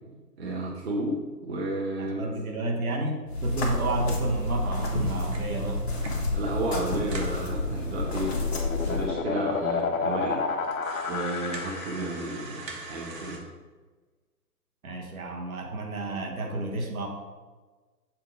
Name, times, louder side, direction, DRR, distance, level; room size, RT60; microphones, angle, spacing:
voice 1, 0.1-1.2 1.4-2.3 6.3-10.4 11.1-13.4, right 2 dB, 40° right, -3 dB, 1.0 m, -32 dB
voice 2, 2.0-5.8 14.8-17.1, right 2 dB, 60° right, 1 dB, 1.2 m, -31 dB
sound 1, 3.3-9.1, left 2 dB, 40° left, 1.2 m, -30 dB
sound 2, 4.7-6.3 6.7-6.8 7.0-7.4 8.1-8.2 8.4-8.5 9.2-9.3 9.8-9.9 10.6-13.4, right 3 dB, 80° right, 1.6 m, -43 dB
sound 3, 7.5-12.3, left 5 dB, 55° left, 0.7 m, -31 dB
7.1 x 2.8 x 5.0 m, 1.3 s
hypercardioid pair, 150°, 48 cm